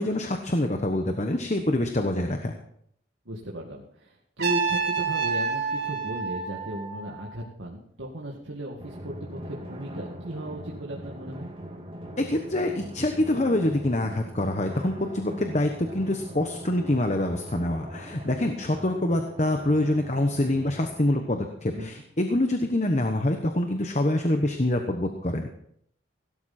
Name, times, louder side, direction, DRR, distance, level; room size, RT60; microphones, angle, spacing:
voice 1, 0.0-2.5 12.2-25.5, left 1 dB, 35° left, 5 dB, 1.1 m, -26 dB
voice 2, 3.3-11.5 18.7-18.9 21.7-21.9, right 1 dB, 75° right, -2 dB, 2.1 m, -36 dB
Trumpet, 4.4-7.4, right 5 dB, 55° right, 4.0 m, -28 dB
Drum, 8.8-21.9, equal, 30° right, 2.0 m, -42 dB
17.0 x 12.5 x 4.4 m, 0.70 s
head